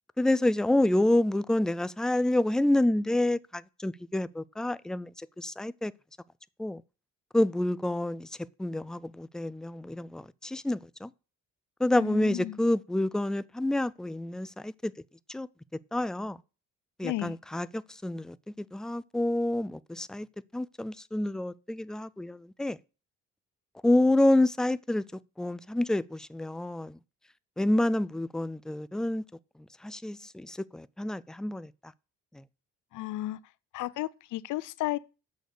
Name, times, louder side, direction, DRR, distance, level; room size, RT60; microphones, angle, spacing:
voice 1, 0.2-5.1 5.4-5.9 6.6-6.8 7.3-8.3 8.6-11.1 11.8-14.9 15.3-15.5 15.9-16.4 17.0-18.4 18.7-20.3 20.5-22.8 23.8-25.0 25.4-27.0 27.6-29.2 29.8-31.7, left 1 dB, ahead, 0.3 m, -28 dB
voice 2, 11.9-12.6 17.0-17.4 32.9-33.4 33.7-35.0, left 16 dB, 85° left, 0.6 m, -33 dB
6.6 x 6.4 x 6.6 m
cardioid pair, 90°, 30 cm